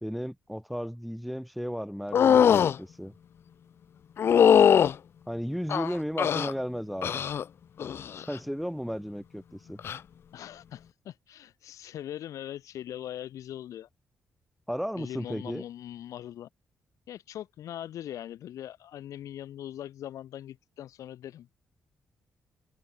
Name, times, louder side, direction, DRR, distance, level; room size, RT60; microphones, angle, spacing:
voice 1, 0.0-3.1 5.3-7.2 8.3-9.8 14.7-15.6, equal, ahead, 1.3 m, -34 dB
sound 1, 2.1-2.8 4.2-4.9 5.7-6.5 7.0-7.4 7.8-8.2 9.8-10.0, left 8 dB, 45° left, 0.5 m, -21 dB
voice 2, 10.3-13.9 14.9-16.5 17.1-21.5, left 11 dB, 85° left, 1.3 m, -41 dB
wide cardioid pair, 155°, 5 cm